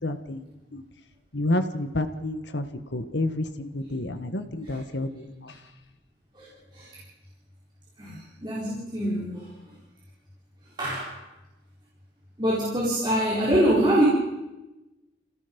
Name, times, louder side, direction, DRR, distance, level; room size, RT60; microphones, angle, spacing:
voice 1, 0.0-0.4 0.7-0.8 1.3-2.7 2.9-5.5, left 1 dB, 75° left, 9 dB, 1.7 m, -29 dB
voice 2, 8.4-9.5 10.8-11.1 12.4-14.1, right 1 dB, 25° right, -6 dB, 4.4 m, -24 dB
28.5 x 17.5 x 5.5 m, 1.0 s
head